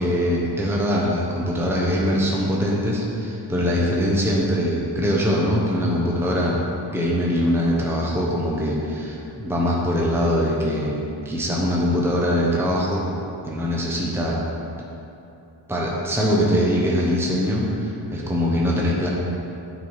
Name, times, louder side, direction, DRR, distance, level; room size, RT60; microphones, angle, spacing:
voice 1, 0.0-6.6 6.9-13.0 13.4-14.4 15.7-19.1, equal, 5° right, -4 dB, 1.0 m, -22 dB
9.0 x 4.5 x 4.8 m, 2.8 s
wide cardioid pair, 100°, 45 cm